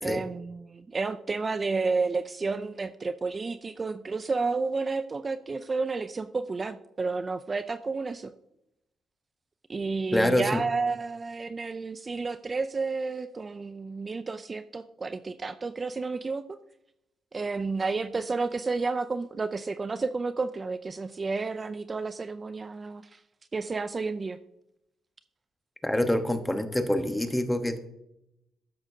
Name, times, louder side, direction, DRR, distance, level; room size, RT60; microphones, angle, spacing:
voice 1, 0.0-8.3 9.7-16.6 17.3-23.2 23.5-24.4, right 4 dB, 30° right, 12 dB, 0.4 m, -31 dB
voice 2, 10.1-10.6 25.8-27.8, left 1 dB, 10° left, 8 dB, 1.0 m, -26 dB
12.0 x 8.8 x 2.7 m, 0.84 s
cardioid pair, 90°, 0 cm